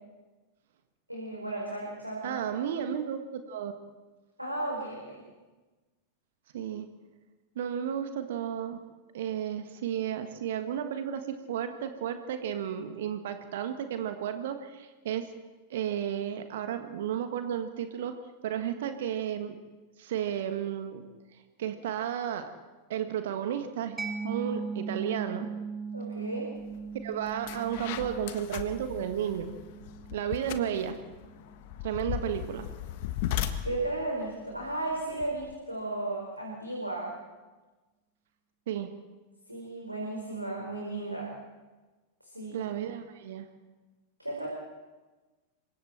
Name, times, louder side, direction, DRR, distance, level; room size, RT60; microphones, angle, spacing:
voice 1, 1.1-2.4 4.4-5.2 25.9-26.5 33.6-37.1 39.5-41.3 42.2-42.6 44.2-44.5, right 2 dB, 85° right, -2 dB, 4.8 m, -34 dB
voice 2, 2.2-3.7 6.5-6.9 7.5-8.8 9.1-15.3 15.7-18.1 18.4-19.6 20.0-21.1 21.3-22.5 22.9-24.0 24.2-25.5 27.0-29.5 30.1-31.0 31.8-32.7 38.7-38.9 42.5-43.5, right 9 dB, 55° right, 8 dB, 1.5 m, -33 dB
Mallet percussion, 24.0-31.4, right 5 dB, 10° right, 2.4 m, -39 dB
sound 1, 26.7-26.9 27.3-35.5, left 11 dB, 50° left, 1.4 m, -37 dB
28.0 x 24.0 x 4.4 m, 1.2 s
figure-of-eight pair, 90°, 0 cm